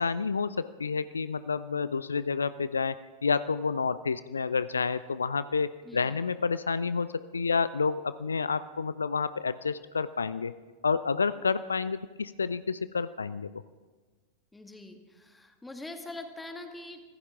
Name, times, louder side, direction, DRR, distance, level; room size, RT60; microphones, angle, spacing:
voice 1, 0.0-10.5 10.8-13.6, left 5 dB, 75° left, 15 dB, 0.4 m, -29 dB
voice 2, 5.8-6.2 14.5-17.0, left 2 dB, 5° left, 5 dB, 2.0 m, -43 dB
25.5 x 15.5 x 3.6 m, 1.4 s
figure-of-eight pair, 90°, 0 cm